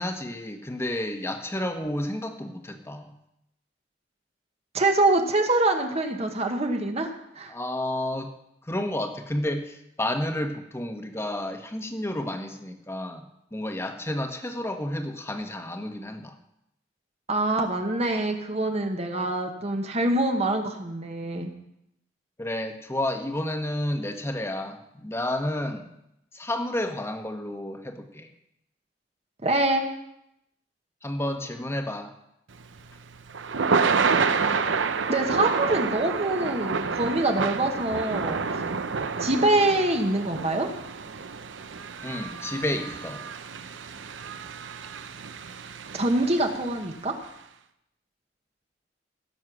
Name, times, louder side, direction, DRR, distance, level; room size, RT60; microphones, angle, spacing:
voice 1, 0.0-3.1 7.5-8.3 8.6-16.3 22.4-25.9 26.3-28.3 31.0-32.1 42.0-43.2, left 1 dB, 15° left, 6 dB, 1.2 m, -31 dB
voice 2, 4.7-7.5 17.3-21.5 29.4-29.8 35.1-38.5 39.2-40.7 45.9-47.1, right 2 dB, 35° right, 4 dB, 1.2 m, -25 dB
Thunder / Rain, 32.6-46.8, right 5 dB, 80° right, 0.8 m, -29 dB
16.0 x 7.4 x 6.2 m, 0.81 s
head